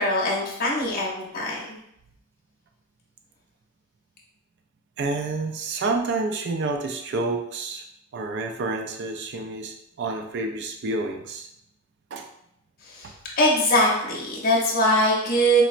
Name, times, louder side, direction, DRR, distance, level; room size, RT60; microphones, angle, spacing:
voice 1, 0.0-1.8 12.9-13.0 13.4-15.6, equal, 40° left, -3 dB, 0.7 m, -22 dB
voice 2, 5.0-7.8 8.1-11.5 12.1-12.3 13.0-13.1, right 3 dB, 50° right, 5 dB, 0.4 m, -29 dB
4.2 x 2.0 x 2.5 m, 0.78 s
head